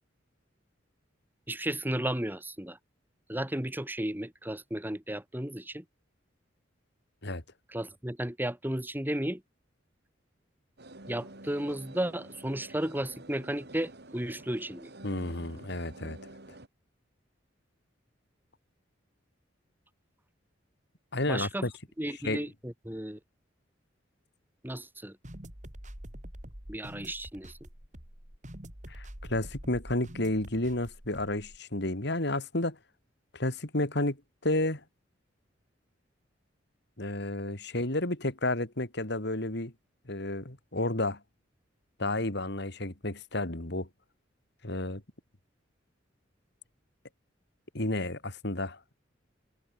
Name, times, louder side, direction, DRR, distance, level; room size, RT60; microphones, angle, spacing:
voice 1, 1.5-2.8 3.3-5.8 7.7-9.4 11.1-14.9 21.3-21.7 22.0-23.2 24.6-25.2 26.7-27.6, right 1 dB, 10° right, 2.3 m, -34 dB
sound 1, 10.8-16.7, right 2 dB, 60° right, 3.8 m, -49 dB
voice 2, 15.0-16.2 21.1-21.7 22.2-22.5 28.9-32.8 33.3-34.2 34.4-34.8 37.0-39.7 40.1-41.2 42.0-43.9 44.6-45.0 47.7-48.8, left 1 dB, 65° left, 3.8 m, -31 dB
sound 2, 25.2-31.6, equal, 40° right, 4.6 m, -46 dB
head